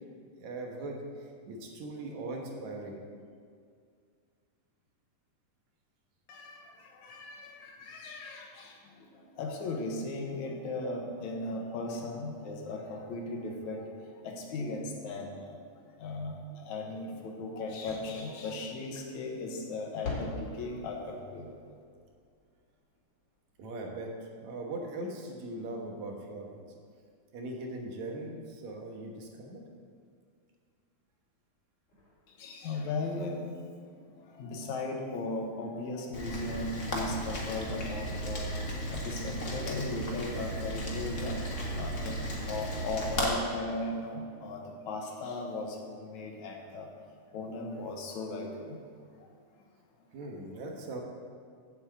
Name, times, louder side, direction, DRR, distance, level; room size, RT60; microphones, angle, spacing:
voice 1, 0.4-1.0 1.5-3.0 23.6-24.1 24.4-26.6 27.3-29.6 50.1-51.0, right 2 dB, 75° right, 1 dB, 2.5 m, -40 dB
voice 2, 7.0-8.4 9.4-13.9 14.2-15.5 16.0-16.3 16.7-20.3 20.6-21.4 32.4-33.3 34.4-38.5 38.9-41.4 41.8-44.6 44.9-45.7 46.1-46.9 47.3-48.5, left 2 dB, 75° left, 1 dB, 2.6 m, -37 dB
sound 1, 17.5-29.8 31.1-31.2 31.6-31.7 31.9-33.1, left 3 dB, 50° left, 3.2 m, -48 dB
Rain, 36.1-43.3, equal, 35° left, 1.4 m, -35 dB
8.2 x 7.6 x 7.5 m, 2.2 s
omnidirectional pair, 3.4 m